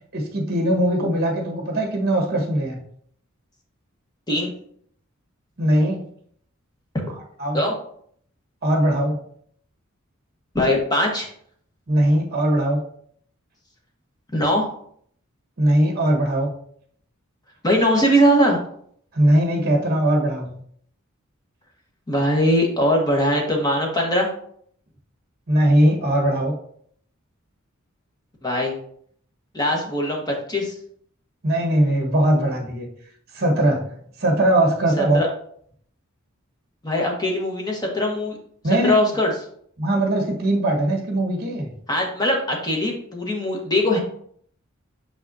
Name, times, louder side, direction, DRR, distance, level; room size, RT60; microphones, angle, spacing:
voice 1, 0.1-2.8 5.6-6.0 7.4-7.6 8.6-9.2 11.9-12.8 15.6-16.5 19.1-20.6 25.5-26.5 31.4-32.9 33.3-35.2 38.6-39.0 39.8-41.8, right 1 dB, 50° right, 1 dB, 1.4 m, -20 dB
voice 2, 10.5-11.3 14.3-14.7 17.6-18.6 22.1-24.3 28.4-28.8 29.5-30.7 35.0-35.3 36.8-38.4 38.8-39.3 41.9-44.0, equal, 20° left, -1 dB, 1.4 m, -21 dB
6.2 x 5.9 x 2.8 m, 0.63 s
head